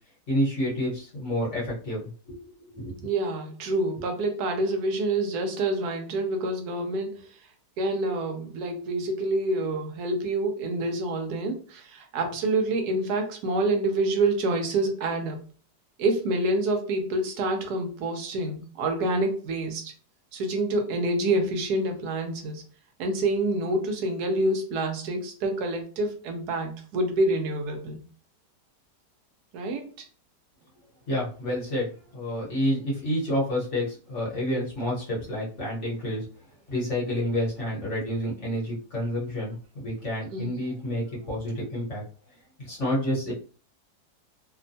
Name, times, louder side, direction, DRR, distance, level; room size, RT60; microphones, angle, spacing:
voice 1, 0.3-2.4 2.6-3.1 31.1-31.9 32.1-36.3 36.7-42.0 42.6-43.3, equal, 50° left, -5 dB, 1.2 m, -29 dB
voice 2, 3.0-7.2 7.8-15.4 16.0-19.9 20.3-22.6 23.0-28.0 29.5-30.1 40.3-40.5, right 2 dB, 75° right, 5 dB, 1.1 m, -27 dB
2.9 x 2.1 x 2.6 m, 0.40 s
omnidirectional pair, 1.8 m